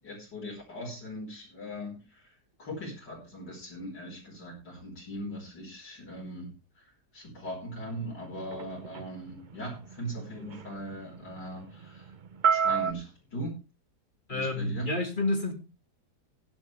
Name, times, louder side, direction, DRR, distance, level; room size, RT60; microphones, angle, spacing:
voice 1, 0.0-6.9 7.1-12.1 12.5-13.6 14.3-14.9, equal, 85° left, 5.7 m, -40 dB
sound 1, 7.9-12.9, right 7 dB, 50° right, 0.5 m, -32 dB
voice 2, 14.3-15.5, left 2 dB, 30° left, 2.3 m, -29 dB
16.0 x 10.5 x 3.4 m
omnidirectional pair, 1.8 m